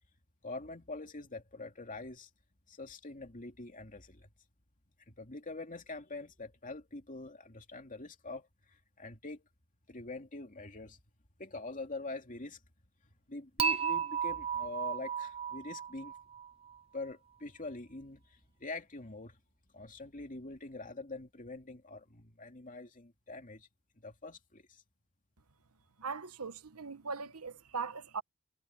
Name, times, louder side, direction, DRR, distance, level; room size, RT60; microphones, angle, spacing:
voice 1, 0.4-2.3 2.7-4.3 5.1-9.4 9.9-11.0 11.4-12.6 13.3-16.1 16.9-19.4 19.7-23.7 24.0-24.8, left 2 dB, 35° left, 2.5 m, -44 dB
Dishes pots and pans / Chink clink, 13.6-16.7, right 7 dB, 25° right, 0.5 m, -34 dB
voice 2, 26.0-28.2, right 5 dB, 85° right, 1.2 m, -40 dB
head